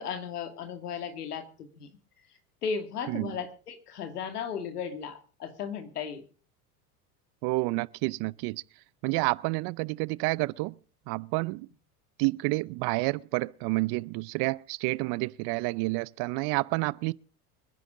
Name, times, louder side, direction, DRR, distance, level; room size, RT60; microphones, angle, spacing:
voice 1, 0.0-2.0 2.3-6.2, left 6 dB, 90° left, 2.5 m, -36 dB
voice 2, 7.4-8.6 9.0-10.7 11.1-11.7 12.2-17.1, right 24 dB, 55° right, 0.6 m, -29 dB
25.0 x 10.5 x 3.8 m
hypercardioid pair, 80°, 45 cm